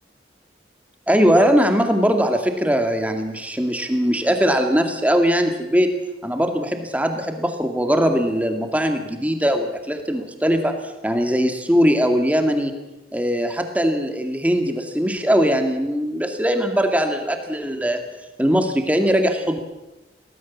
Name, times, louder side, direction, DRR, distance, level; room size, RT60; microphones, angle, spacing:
voice 1, 1.1-5.9 6.2-12.7 13.1-18.0 18.4-19.6, equal, 10° right, 5 dB, 2.2 m, -20 dB
23.5 x 18.0 x 7.3 m, 1.0 s
head